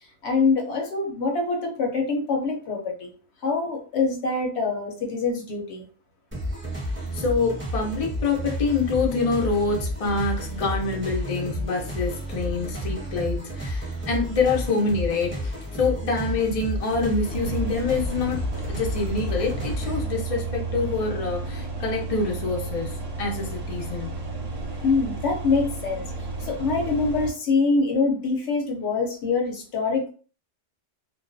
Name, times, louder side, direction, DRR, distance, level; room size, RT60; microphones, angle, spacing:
voice 1, 0.2-3.1 3.4-5.8 24.8-26.1 26.4-30.1, left 4 dB, 65° left, 1 dB, 0.8 m, -24 dB
sound 1, 6.3-20.0, equal, 10° right, 0.9 m, -31 dB
voice 2, 7.1-24.2, left 4 dB, 45° left, 0 dB, 0.4 m, -26 dB
sound 2, 17.3-27.3, right 3 dB, 55° right, 0.7 m, -32 dB
2.3 x 2.1 x 2.5 m, 0.39 s
omnidirectional pair, 1.3 m